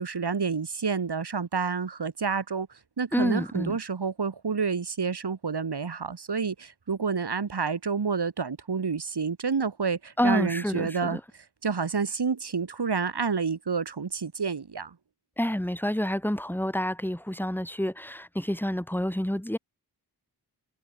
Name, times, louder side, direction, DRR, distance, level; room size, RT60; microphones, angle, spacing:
voice 1, 0.0-2.7 3.0-11.2 11.6-15.0, right 5 dB, 75° right, 5.4 m, -29 dB
voice 2, 3.1-3.8 10.2-11.2 15.4-19.6, equal, 5° left, 3.4 m, -28 dB
cardioid pair, 45°, 40 cm